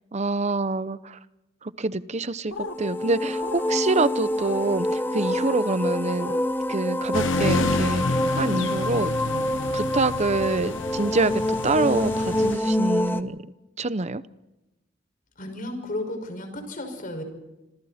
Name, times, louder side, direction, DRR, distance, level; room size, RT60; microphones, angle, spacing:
voice 1, 0.1-1.2 1.6-6.3 6.7-9.1 9.7-13.5 13.8-14.2, right 3 dB, 35° right, 15 dB, 0.8 m, -26 dB
sound 1, 2.5-2.8 3.4-3.7 4.4-4.6 5.2-5.6 6.2-6.4 8.4-8.6 9.5-9.7 11.0-11.1 12.0-12.1, left 3 dB, 90° left, 1.6 m, -36 dB
sound 2, 2.6-13.2, left 1 dB, 10° left, 0.9 m, -27 dB
sound 3, 7.1-12.6, left 2 dB, 70° left, 1.0 m, -29 dB
voice 2, 15.4-17.2, left 1 dB, 45° left, 6 dB, 5.8 m, -33 dB
27.0 x 26.5 x 4.3 m, 0.98 s
head